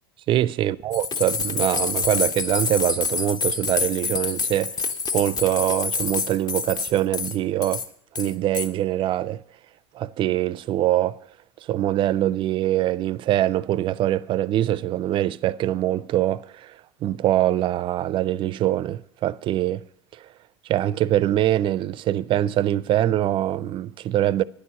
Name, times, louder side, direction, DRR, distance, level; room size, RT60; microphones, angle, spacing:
voice 1, 0.3-7.8 8.1-9.4 9.9-11.2 11.7-19.8 20.1-20.2 20.7-24.4, right 13 dB, 40° right, 0.4 m, -23 dB
sound 1, 0.9-7.4 7.6-7.8 8.1-8.7, left 4 dB, 30° left, 0.9 m, -27 dB
9.8 x 6.8 x 8.7 m
hypercardioid pair, 90°, 13 cm